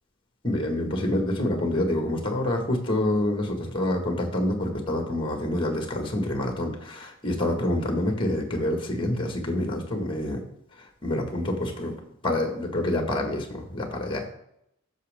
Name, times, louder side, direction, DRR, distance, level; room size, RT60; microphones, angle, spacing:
voice 1, 0.4-10.4 10.8-12.0 12.2-14.2, left 1 dB, 25° left, 3 dB, 1.8 m, -27 dB
14.5 x 6.4 x 3.6 m, 0.77 s
head